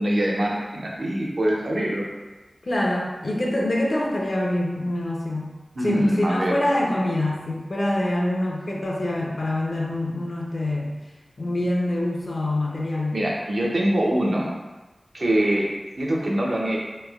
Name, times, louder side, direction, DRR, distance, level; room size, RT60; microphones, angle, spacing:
voice 1, 0.0-2.0 5.8-6.5 13.1-14.5 15.1-15.7 16.0-16.8, right 1 dB, 75° right, -3 dB, 0.5 m, -23 dB
voice 2, 2.6-5.5 5.8-11.0 11.4-13.2, left 1 dB, 65° left, -2 dB, 0.5 m, -25 dB
3.0 x 2.0 x 2.3 m, 1.2 s
wide cardioid pair, 55°, 0 cm